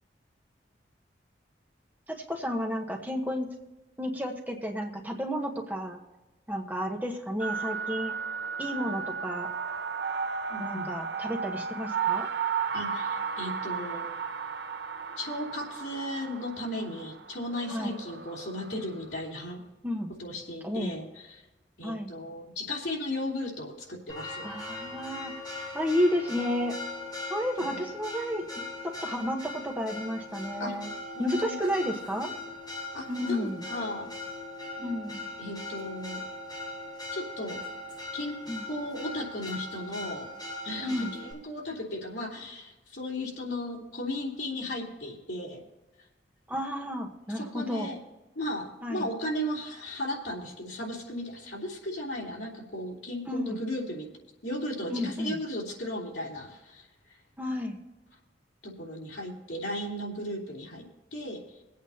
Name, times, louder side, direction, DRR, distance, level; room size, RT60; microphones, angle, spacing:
voice 1, 2.1-3.5 4.0-6.0 6.5-8.1 8.6-9.5 10.6-12.3 17.7-18.0 19.8-20.1 20.6-20.9 21.8-22.1 24.4-25.3 25.7-26.8 27.3-30.9 31.2-32.3 33.1-33.6 34.8-35.2 38.5-38.6 40.8-41.2 46.5-47.9 48.8-49.1 53.3-53.6 54.9-55.4 57.4-57.8, equal, 10° right, 1 dB, 1.1 m, -32 dB
sound 1, 7.4-19.0, right 6 dB, 65° right, 0.9 m, -34 dB
voice 2, 10.5-10.9 12.7-14.0 15.2-19.6 20.2-21.4 21.8-24.5 27.7-27.8 30.6-30.7 31.1-31.6 31.8-32.0 32.9-34.1 34.8-34.9 35.4-36.3 37.1-37.6 38.1-38.4 38.7-40.3 40.6-45.6 47.3-48.0 48.3-54.1 54.4-56.9 58.6-60.9 61.1-61.4, left 1 dB, 75° left, -2 dB, 3.0 m, -36 dB
Church bell, 24.1-41.3, left 2 dB, 25° left, 5.1 m, -40 dB
23.0 x 8.5 x 2.8 m, 1.1 s
head